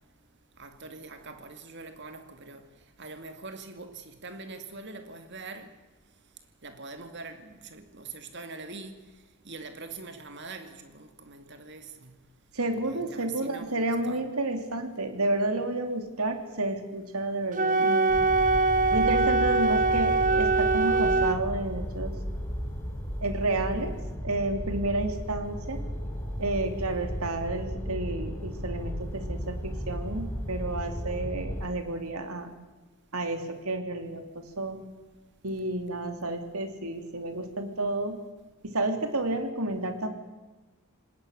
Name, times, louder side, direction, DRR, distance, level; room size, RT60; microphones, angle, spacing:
voice 1, 0.6-2.7 3.0-5.7 6.6-9.0 9.4-12.2 12.9-14.2, right 3 dB, 50° right, 2.4 m, -43 dB
voice 2, 12.5-18.2 18.9-22.1 23.2-24.0 24.2-25.8 26.4-32.5 33.1-34.8 35.4-38.2 38.6-40.1, right 2 dB, 80° right, 3.1 m, -31 dB
Wind instrument woodwind instrument, 17.5-21.4, right 3 dB, 35° right, 0.9 m, -23 dB
sound 1, 18.1-31.6, equal, 15° left, 3.7 m, -34 dB
26.5 x 19.5 x 6.6 m
head